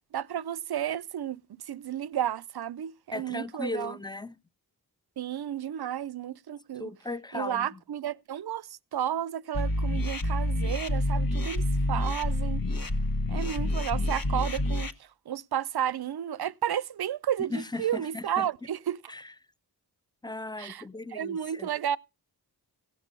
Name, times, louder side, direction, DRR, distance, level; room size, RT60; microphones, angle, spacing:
voice 1, 0.1-4.0 5.2-6.9 7.3-12.6 13.3-19.1 20.6-20.8 21.1-22.0, right 10 dB, 70° right, 0.5 m, -32 dB
voice 2, 3.1-4.3 6.8-7.8 17.5-18.5 19.1-19.3 20.2-21.7, left 2 dB, 10° left, 0.6 m, -37 dB
sound 1, 9.5-14.9, left 1 dB, 55° left, 1.1 m, -28 dB
16.5 x 6.2 x 5.3 m
cardioid pair, 45°, 40 cm